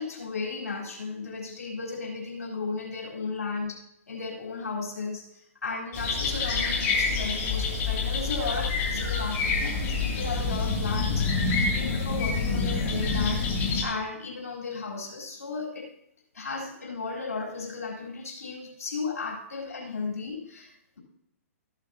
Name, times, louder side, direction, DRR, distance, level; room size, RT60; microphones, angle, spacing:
voice 1, 0.0-3.8 4.1-15.9 16.3-21.0, left 4 dB, 90° left, -3 dB, 4.1 m, -35 dB
sound 1, 5.9-13.8, left 4 dB, 30° left, 2.8 m, -27 dB
14.5 x 11.5 x 2.9 m, 0.75 s
hypercardioid pair, 135°, 8 cm